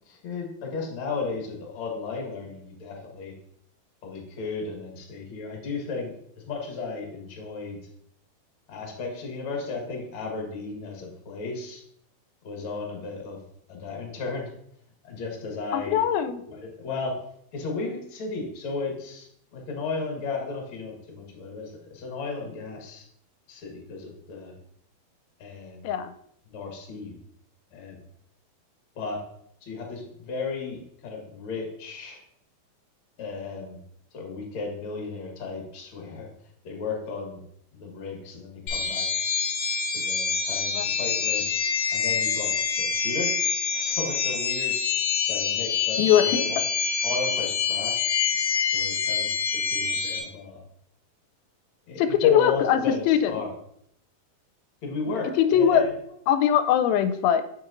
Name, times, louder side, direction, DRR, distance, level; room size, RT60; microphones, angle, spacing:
voice 1, 0.1-3.3 4.0-6.1 6.5-7.8 8.7-11.8 12.4-13.4 13.7-14.5 15.0-16.0 16.5-17.2 17.5-23.0 23.5-24.5 25.4-25.9 26.5-27.1 27.7-28.0 28.9-29.2 29.6-32.2 33.2-33.8 34.1-36.3 36.6-37.4 37.7-39.1 39.9-41.6 41.9-44.7 45.3-46.6 47.0-48.0 48.6-50.6 51.9-53.5 54.8-56.0, left 4 dB, 55° left, 0 dB, 1.5 m, -34 dB
voice 2, 15.7-16.4 25.8-26.1 40.8-40.9 46.0-46.5 52.0-52.8 53.1-53.3 55.4-55.8 56.3-57.4, left 9 dB, 90° left, 9 dB, 2.4 m, -21 dB
sound 1, 38.7-50.2, left 6 dB, 75° left, 1.8 m, -26 dB
7.1 x 6.0 x 2.5 m, 0.70 s
omnidirectional pair, 4.2 m